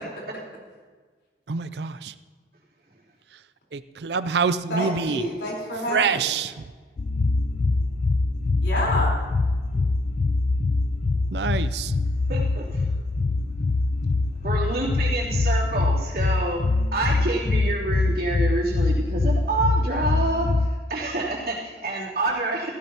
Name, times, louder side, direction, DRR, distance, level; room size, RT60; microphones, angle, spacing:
voice 1, 1.5-2.1 3.7-5.3 5.9-6.5 11.3-11.9, right 5 dB, 75° right, 14 dB, 0.5 m, -26 dB
voice 2, 4.7-6.3 8.6-9.1, left 1 dB, 80° left, -3 dB, 4.2 m, -28 dB
sound 1, 7.0-20.7, left 3 dB, 45° left, 0.4 m, -23 dB
voice 3, 12.3-12.8 14.4-16.6 16.9-22.7, right 2 dB, 60° right, -6 dB, 3.3 m, -27 dB
16.0 x 15.0 x 2.9 m, 1.5 s
head